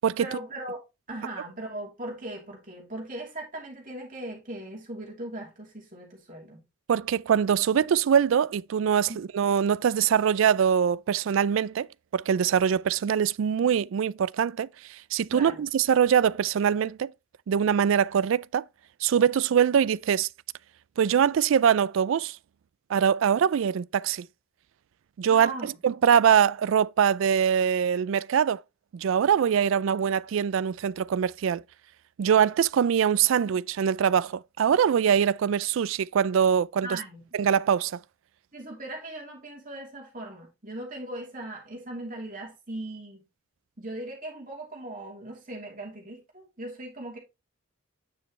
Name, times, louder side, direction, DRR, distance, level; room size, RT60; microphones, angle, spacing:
voice 1, 0.2-0.8 1.1-6.6 9.1-9.2 15.3-15.6 25.3-25.7 36.8-37.3 38.5-43.2 43.8-47.2, right 1 dB, 40° right, 3.0 m, -39 dB
voice 2, 6.9-11.9 12.1-17.1 17.5-18.6 19.0-20.3 21.0-22.4 22.9-24.3 25.2-28.6 28.9-31.6 32.2-37.0 37.3-38.0, right 8 dB, 75° right, 0.3 m, -23 dB
9.4 x 5.3 x 3.1 m
head